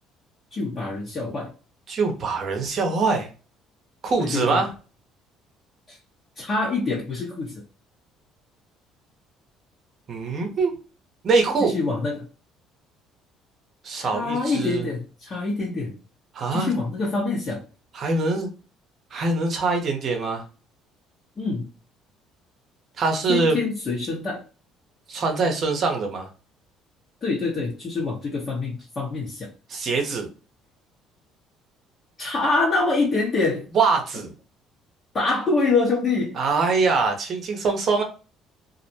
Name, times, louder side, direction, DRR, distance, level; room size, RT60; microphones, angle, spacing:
voice 1, 0.5-1.5 4.2-4.6 5.9-6.0 6.4-7.5 11.6-12.2 13.9-16.0 16.5-17.6 21.4-21.7 23.3-24.4 27.2-29.5 32.2-33.7 35.1-36.4, left 3 dB, 40° left, -6 dB, 1.0 m, -25 dB
voice 2, 1.9-3.3 4.0-4.7 10.1-10.7 11.2-11.7 13.8-14.8 16.3-16.7 17.9-18.5 19.1-20.4 23.0-23.6 25.1-26.3 29.7-30.3 33.7-34.3 36.3-38.0, right 4 dB, 55° right, 3 dB, 0.8 m, -23 dB
2.5 x 2.0 x 2.7 m, 0.35 s
supercardioid pair, 75°, 0 cm